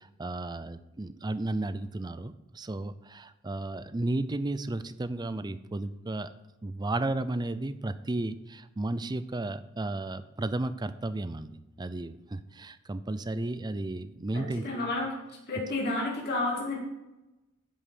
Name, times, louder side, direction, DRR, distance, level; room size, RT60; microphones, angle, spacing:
voice 1, 0.0-6.3 6.6-14.9, right 2 dB, 20° right, 12 dB, 0.5 m, -33 dB
voice 2, 14.3-15.1 15.5-16.8, left 2 dB, 50° left, -3 dB, 2.2 m, -31 dB
10.5 x 5.6 x 6.5 m, 0.96 s
head